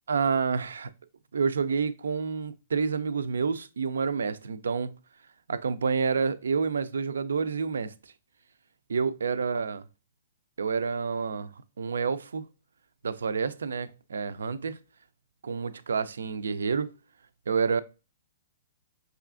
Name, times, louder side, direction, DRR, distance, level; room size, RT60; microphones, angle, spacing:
voice 1, 0.1-0.9 1.3-4.9 5.5-7.9 8.9-9.8 10.6-11.5 11.8-12.4 13.0-14.8 15.4-16.9 17.5-17.8, right 5 dB, 85° right, 0.3 m, -28 dB
5.5 x 2.3 x 2.4 m
hypercardioid pair, 140°, 0 cm